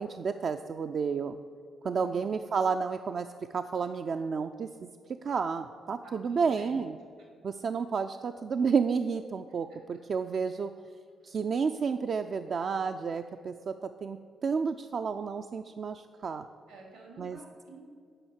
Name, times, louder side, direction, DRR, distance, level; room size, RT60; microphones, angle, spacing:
voice 1, 0.0-1.4 1.8-4.9 5.2-6.9 7.4-10.7 11.2-16.5 17.2-17.4, right 5 dB, 55° right, 7 dB, 0.4 m, -31 dB
voice 2, 1.9-2.3 6.0-6.9 9.7-9.8 11.2-11.4 16.7-17.8, right 2 dB, 90° right, -1 dB, 2.9 m, -50 dB
9.9 x 5.7 x 7.2 m, 2.2 s
hypercardioid pair, 40°, 0 cm